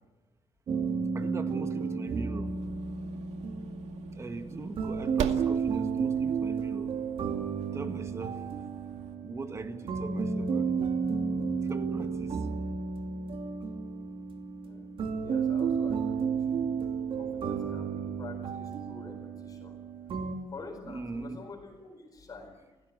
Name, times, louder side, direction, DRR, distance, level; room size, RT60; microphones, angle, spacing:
sound 1, 0.7-20.4, right 5 dB, 55° right, 2.6 m, -32 dB
voice 1, 1.1-2.7 4.1-7.0 7.7-8.4 9.2-10.7 11.6-12.5 20.9-21.4, right 3 dB, 25° right, 8 dB, 2.0 m, -40 dB
sound 2, 2.4-9.2, right 8 dB, 85° right, 2.2 m, -41 dB
voice 2, 15.2-16.6 17.2-19.8 20.5-22.8, left 3 dB, 35° left, 4 dB, 4.4 m, -47 dB
30.0 x 16.5 x 8.3 m, 1.2 s
cardioid pair, 155°, 11 cm